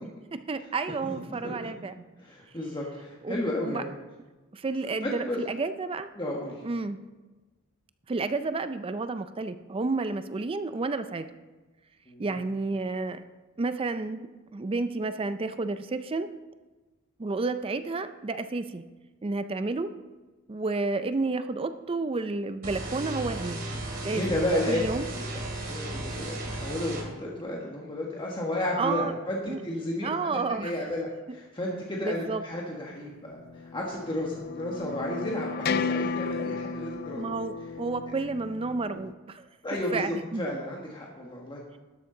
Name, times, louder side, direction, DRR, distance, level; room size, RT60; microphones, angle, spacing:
voice 1, 0.3-1.9 3.2-3.8 4.5-6.1 6.6-7.0 8.1-11.3 12.2-13.2 13.6-14.3 14.5-16.3 17.2-18.8 19.2-19.9 20.5-23.6 24.0-24.4 24.7-25.1 28.8-29.1 29.5-29.6 30.0-30.7 32.0-32.4 37.2-40.5, right 3 dB, 25° right, 11 dB, 0.4 m, -31 dB
voice 2, 2.2-3.9 5.0-5.4 6.1-6.6 12.1-12.3 24.0-24.8 25.1-25.2 25.7-37.2 39.6-41.8, left 1 dB, 20° left, -3 dB, 1.3 m, -32 dB
sound 1, 22.6-27.0, right 2 dB, 45° right, 2.6 m, -35 dB
sound 2, 33.4-39.1, left 5 dB, 45° left, 0.4 m, -34 dB
12.5 x 12.0 x 3.8 m, 1.2 s
head